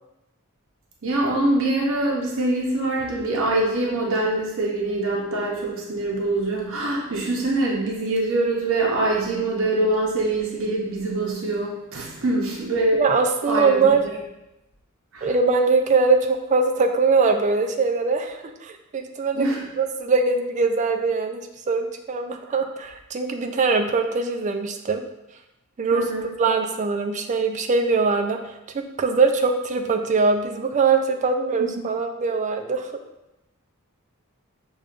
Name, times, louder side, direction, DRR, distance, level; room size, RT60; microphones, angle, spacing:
voice 1, 1.0-13.0 13.5-14.1 15.1-15.3 19.3-19.6 25.9-26.2 31.6-32.0, right 2 dB, 60° right, -3 dB, 0.7 m, -24 dB
voice 2, 13.0-14.0 15.2-19.5 19.8-25.0 25.8-26.1 26.4-28.4 28.7-32.9, right 4 dB, 35° right, 5 dB, 0.3 m, -22 dB
6.5 x 2.3 x 2.4 m, 0.93 s
head